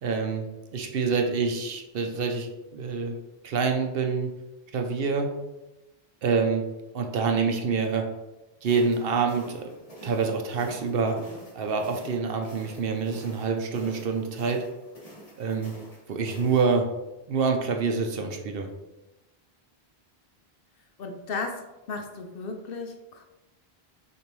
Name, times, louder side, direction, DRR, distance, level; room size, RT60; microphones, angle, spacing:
voice 1, 0.0-0.4 0.7-3.2 3.4-4.3 4.7-5.3 6.2-6.6 6.9-8.1 8.6-9.7 10.0-11.2 11.5-14.6 15.4-15.7 16.1-16.9 17.3-18.7, right 5 dB, 70° right, 4 dB, 0.8 m, -26 dB
sound 1, 8.6-16.7, right 1 dB, 35° left, 1.8 m, -48 dB
voice 2, 21.0-23.2, left 4 dB, 70° left, 4 dB, 0.8 m, -35 dB
6.6 x 2.6 x 3.0 m, 0.99 s
omnidirectional pair, 1.0 m